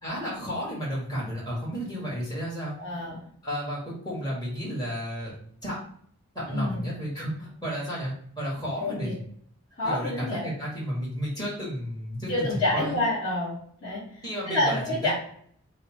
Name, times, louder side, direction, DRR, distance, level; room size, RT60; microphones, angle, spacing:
voice 1, 0.0-2.7 3.4-5.3 5.6-5.8 6.3-9.2 9.8-13.0 14.2-15.1, equal, 15° left, -6 dB, 1.5 m, -32 dB
voice 2, 2.8-3.2 6.5-6.9 8.8-9.1 9.8-10.5 12.3-15.1, left 2 dB, 35° left, -12 dB, 1.3 m, -28 dB
5.0 x 2.1 x 4.4 m, 0.62 s
head